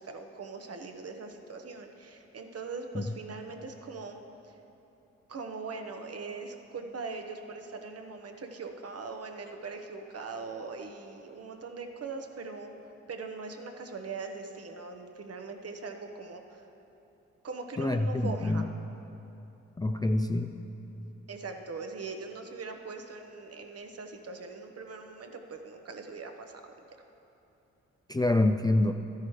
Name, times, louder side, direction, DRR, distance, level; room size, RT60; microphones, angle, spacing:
voice 1, 0.0-4.2 4.4-4.6 5.3-12.7 13.1-16.6 17.4-18.7 21.3-26.9, right 4 dB, 50° right, 4 dB, 1.1 m, -41 dB
voice 2, 17.8-18.6 19.8-20.5 28.1-28.9, left 2 dB, 15° left, 6 dB, 0.4 m, -26 dB
13.0 x 10.5 x 3.2 m, 2.9 s
supercardioid pair, 55°, 32 cm